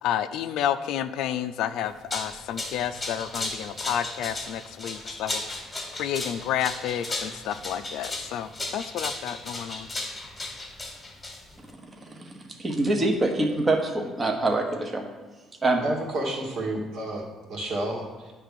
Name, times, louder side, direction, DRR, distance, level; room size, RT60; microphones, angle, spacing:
voice 1, 0.0-5.4 5.9-9.9, left 10 dB, 75° left, 11 dB, 0.4 m, -30 dB
sound 1, 1.9-11.7, left 2 dB, 15° left, 1.4 m, -35 dB
voice 2, 12.6-15.0 15.6-15.8, right 2 dB, 20° right, 3 dB, 0.9 m, -24 dB
voice 3, 15.8-18.3, right 1 dB, 60° right, -2 dB, 1.8 m, -31 dB
9.6 x 3.4 x 6.7 m, 1.2 s
cardioid pair, 130°, 0 cm